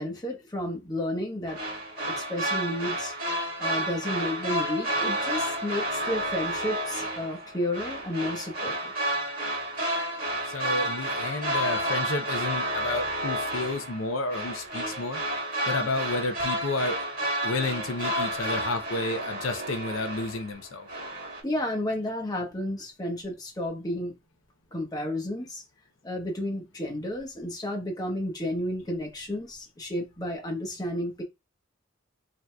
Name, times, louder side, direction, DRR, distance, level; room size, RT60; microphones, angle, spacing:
voice 1, 0.0-1.6 2.0-3.1 3.6-8.9 21.4-24.2 24.7-25.6 26.0-31.2, left 1 dB, 20° left, 1.0 m, -32 dB
sound 1, 1.5-20.6 20.9-21.4, right 1 dB, 45° right, 1.8 m, -31 dB
voice 2, 10.4-15.2 15.7-17.1 17.4-20.9, left 2 dB, 90° left, 0.6 m, -31 dB
4.7 x 2.9 x 2.3 m
head